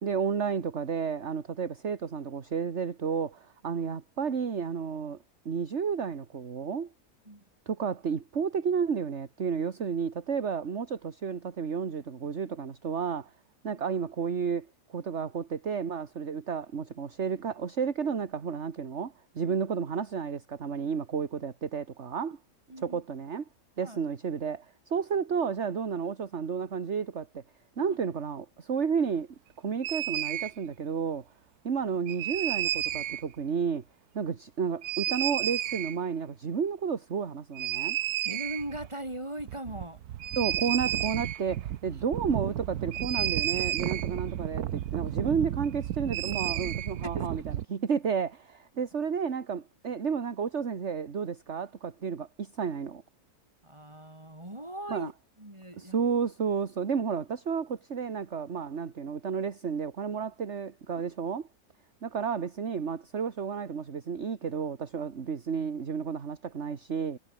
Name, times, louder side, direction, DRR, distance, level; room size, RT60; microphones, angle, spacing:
voice 1, 0.0-5.2 5.4-6.9 7.7-13.3 13.6-22.4 22.8-23.4 23.8-27.4 27.8-29.3 29.6-31.2 31.6-33.8 34.1-38.0 40.4-53.0 54.9-55.1 55.8-61.4 62.0-67.2, right 6 dB, 50° right, 1.8 m, -32 dB
voice 2, 22.7-23.0 23.8-24.0 27.8-28.0 38.2-40.0 47.0-47.3 53.6-55.1 55.4-56.0 60.9-61.0, right 1 dB, 20° right, 5.3 m, -39 dB
sound 1, 29.8-30.5 32.1-33.2 34.8-36.0 37.6-38.9 39.1-39.2 39.4-47.7, right 12 dB, 85° right, 1.3 m, -32 dB
omnidirectional pair, 1.6 m